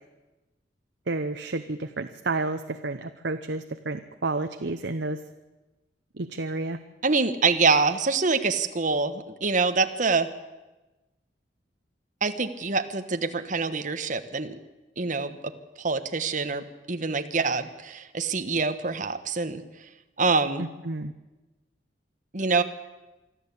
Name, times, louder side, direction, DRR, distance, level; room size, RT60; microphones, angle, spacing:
voice 1, 1.1-5.2 6.2-6.8 20.9-21.1, right 2 dB, 70° right, 8 dB, 0.9 m, -30 dB
voice 2, 7.0-10.3 12.2-14.5 15.0-15.5 15.8-19.6 20.2-20.6 22.3-22.6, right 4 dB, 45° right, 8 dB, 1.3 m, -25 dB
24.5 x 13.0 x 8.4 m, 1.1 s
head